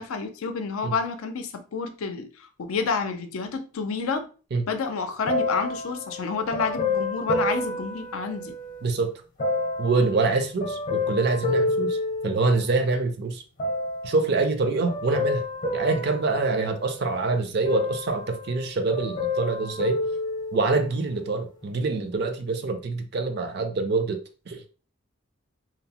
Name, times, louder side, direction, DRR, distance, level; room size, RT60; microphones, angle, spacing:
voice 1, 0.0-4.3 4.7-8.5, left 5 dB, 85° left, 0.5 m, -29 dB
sound 1, 5.3-8.9 9.4-12.9 13.6-14.3 14.9-17.2 17.6-18.7 18.9-21.0 21.6-21.7, left 2 dB, 40° left, 0.7 m, -29 dB
voice 2, 8.8-9.1 9.8-12.0 12.2-13.4 14.0-15.4 15.7-20.0 20.5-24.2 24.5-24.6, right 3 dB, 50° right, 0.4 m, -25 dB
2.7 x 2.0 x 2.8 m
head